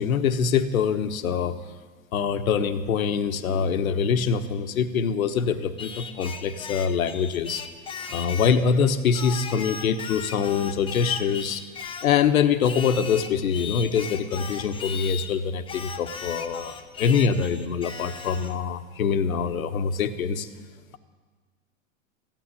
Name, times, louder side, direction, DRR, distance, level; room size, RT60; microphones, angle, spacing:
voice 1, 0.0-1.6 2.1-7.7 8.1-20.5, left 6 dB, 80° left, 10 dB, 1.2 m, -24 dB
Singing, 5.8-8.6 9.1-12.2 12.6-15.3 15.7-18.6, left 6 dB, 15° left, 0.8 m, -37 dB
15.0 x 9.2 x 9.7 m, 1.4 s
hypercardioid pair, 125°, 41 cm